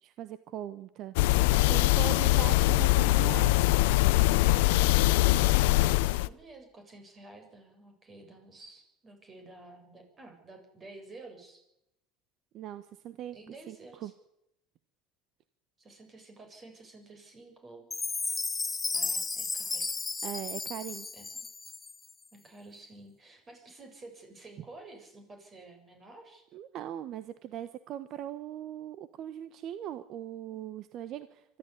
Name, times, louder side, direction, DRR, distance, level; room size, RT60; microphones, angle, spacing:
voice 1, 0.0-1.1 1.7-3.6 12.5-13.4 13.7-14.1 20.2-21.1 26.5-31.4, right 11 dB, 55° right, 13 dB, 1.1 m, -40 dB
sound 1, 1.2-6.3, left 18 dB, 80° left, 0.7 m, -23 dB
voice 2, 5.5-11.6 13.3-14.1 15.8-17.9 18.7-19.9 21.1-21.5 22.3-26.5 30.5-30.6, right 2 dB, 30° right, 5 dB, 7.5 m, -51 dB
Chime, 17.9-22.1, left 4 dB, 20° left, 0.7 m, -34 dB
24.0 x 13.5 x 10.0 m, 0.86 s
supercardioid pair, 100°, 0 cm